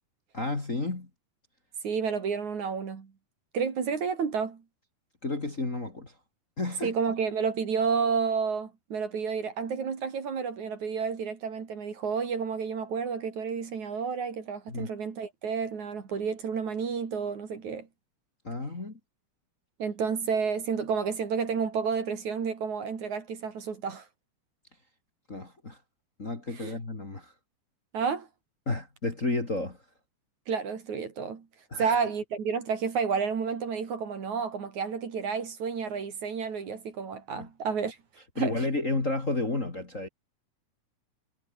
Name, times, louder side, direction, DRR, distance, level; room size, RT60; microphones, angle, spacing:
voice 1, 0.3-1.1 5.2-6.1 6.6-6.9 14.7-14.9 18.4-19.0 25.3-25.8 26.2-27.3 28.7-29.8 31.7-32.0 37.3-37.5 38.4-40.1, left 2 dB, 25° left, 2.9 m, -31 dB
voice 2, 1.8-3.1 3.5-4.6 6.8-17.9 19.8-24.1 26.5-26.7 27.9-28.3 30.5-31.5 31.8-38.0 38.4-38.6, right 6 dB, 55° right, 4.2 m, -30 dB
omnidirectional pair, 4.2 m